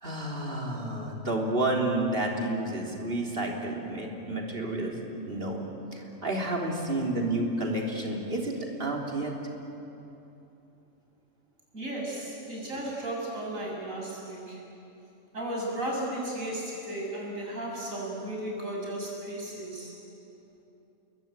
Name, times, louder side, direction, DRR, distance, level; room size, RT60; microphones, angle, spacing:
voice 1, 0.0-5.0 5.3-5.6 5.9-9.3, right 2 dB, 40° right, 0 dB, 3.8 m, -30 dB
voice 2, 11.7-14.6 15.3-19.9, right 1 dB, 70° right, -3 dB, 7.4 m, -35 dB
29.5 x 21.5 x 9.0 m, 2.9 s
omnidirectional pair, 1.4 m